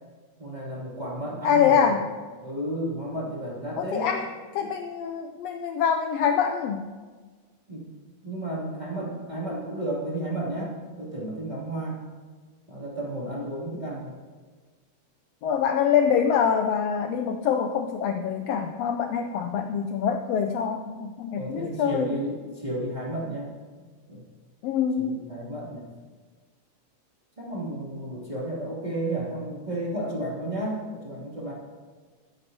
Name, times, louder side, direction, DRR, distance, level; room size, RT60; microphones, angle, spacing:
voice 1, 0.4-2.0 2.4-4.1 4.6-4.7 7.7-7.8 8.2-12.0 12.7-14.2 21.3-23.5 24.1-24.3 25.0-25.8 27.4-31.5, right 1 dB, 15° right, -6 dB, 2.6 m, -32 dB
voice 2, 1.4-2.0 3.8-4.3 4.5-6.8 15.4-22.1 24.6-25.2, left 7 dB, 75° left, 5 dB, 1.6 m, -25 dB
20.5 x 9.8 x 2.8 m, 1.4 s
omnidirectional pair, 3.3 m